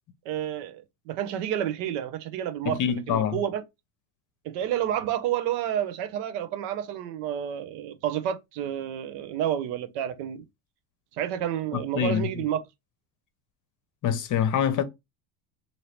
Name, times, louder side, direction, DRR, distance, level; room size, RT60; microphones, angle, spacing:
voice 1, 0.2-3.6 4.4-10.4 11.2-12.6, right 10 dB, 75° right, 0.8 m, -30 dB
voice 2, 2.6-3.4 11.7-12.3 14.0-14.8, left 8 dB, 45° left, 0.8 m, -25 dB
2.8 x 2.8 x 3.1 m
supercardioid pair, 95°, 44 cm